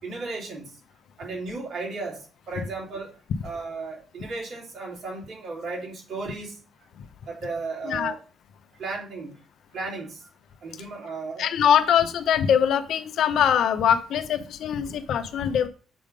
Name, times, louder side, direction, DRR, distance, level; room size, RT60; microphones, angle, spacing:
voice 1, 0.0-0.8 1.2-6.6 7.3-8.2 8.8-9.4 9.7-10.3 10.6-11.5, right 3 dB, 65° right, -2 dB, 3.3 m, -35 dB
voice 2, 11.4-15.7, left 8 dB, 70° left, 11 dB, 0.6 m, -22 dB
7.6 x 3.5 x 5.1 m, 0.37 s
cardioid pair, 90°, 0 cm